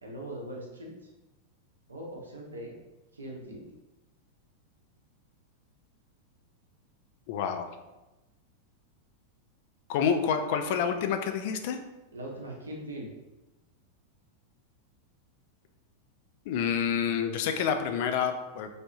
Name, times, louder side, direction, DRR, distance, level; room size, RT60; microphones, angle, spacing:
voice 1, 0.0-0.9 1.9-2.7 3.1-3.7 12.1-13.1, right 1 dB, 75° right, -2 dB, 0.7 m, -40 dB
voice 2, 7.3-7.7 9.9-11.8 16.5-18.7, left 7 dB, 50° left, 6 dB, 0.3 m, -28 dB
3.3 x 2.5 x 2.6 m, 1.0 s
figure-of-eight pair, 90°, 0 cm